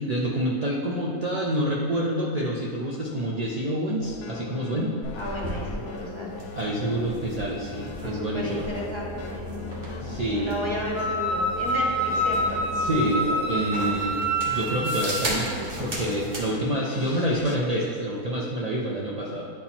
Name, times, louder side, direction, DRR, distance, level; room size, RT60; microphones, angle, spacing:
voice 1, 0.0-4.9 6.5-8.7 10.0-10.5 12.8-19.5, right 1 dB, 85° right, -4 dB, 0.3 m, -27 dB
sound 1, 4.0-17.6, left 5 dB, 75° left, 1.0 m, -40 dB
sound 2, 5.0-16.5, equal, 40° right, 1.3 m, -36 dB
voice 2, 5.2-6.5 8.0-9.5 10.3-12.7, equal, 25° left, -4 dB, 0.9 m, -33 dB
Wind instrument woodwind instrument, 10.9-15.2, right 1 dB, 65° right, 1.9 m, -27 dB
10.0 x 4.2 x 2.9 m, 2.3 s
omnidirectional pair, 1.5 m